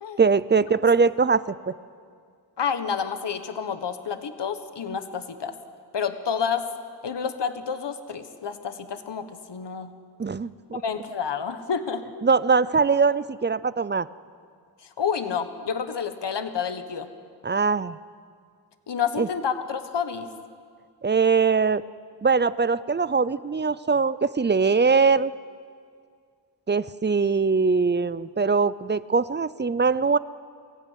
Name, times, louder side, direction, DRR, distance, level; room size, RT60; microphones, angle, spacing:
voice 1, 0.2-1.8 10.2-10.8 12.2-14.1 17.4-18.0 19.2-19.3 21.0-21.8 22.2-25.3 26.7-30.2, right 5 dB, 25° right, 17 dB, 0.5 m, -22 dB
voice 2, 2.6-5.5 5.9-6.7 7.0-9.9 10.7-12.0 14.8-17.1 18.9-20.3, left 6 dB, 65° left, 9 dB, 1.5 m, -29 dB
23.0 x 16.0 x 9.3 m, 2.2 s
wide cardioid pair, 90°, 44 cm